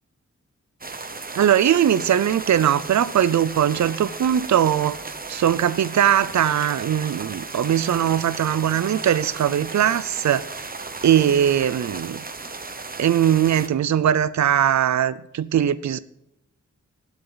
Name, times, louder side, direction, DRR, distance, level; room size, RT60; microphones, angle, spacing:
sound 1, 0.8-13.7, right 3 dB, 30° right, 1.1 m, -35 dB
voice 1, 1.4-10.6 11.0-12.2 13.0-16.0, right 10 dB, 70° right, 0.5 m, -20 dB
19.0 x 7.1 x 3.9 m
wide cardioid pair, 110°, 29 cm